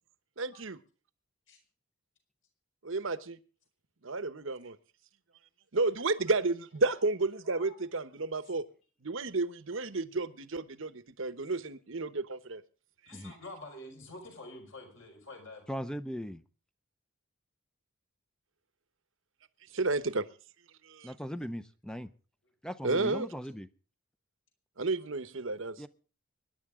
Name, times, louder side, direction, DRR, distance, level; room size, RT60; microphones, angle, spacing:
voice 1, 0.4-0.8 2.8-3.4 4.0-4.8 5.7-8.6 9.0-12.6 19.7-20.3 20.8-21.1 22.8-23.3 24.8-25.8, right 3 dB, 65° right, 13 dB, 1.0 m, -31 dB
voice 2, 7.4-7.8 13.1-15.8, left 2 dB, 60° left, 3 dB, 5.5 m, -48 dB
voice 3, 15.7-16.4 21.0-22.1 22.6-23.7 25.8-25.9, equal, 5° left, 12 dB, 0.6 m, -38 dB
24.5 x 11.0 x 3.7 m, 0.38 s
head